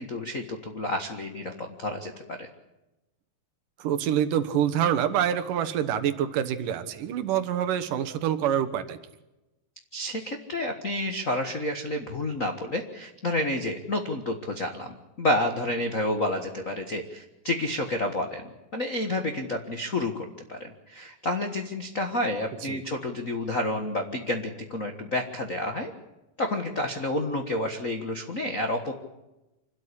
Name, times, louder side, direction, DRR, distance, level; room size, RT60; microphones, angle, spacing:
voice 1, 0.0-2.5 9.9-25.9 26.4-28.9, left 1 dB, 75° left, 5 dB, 0.7 m, -30 dB
voice 2, 3.8-9.0 22.6-22.8, right 9 dB, 70° right, 11 dB, 2.7 m, -26 dB
26.5 x 13.0 x 9.9 m, 0.99 s
omnidirectional pair, 4.1 m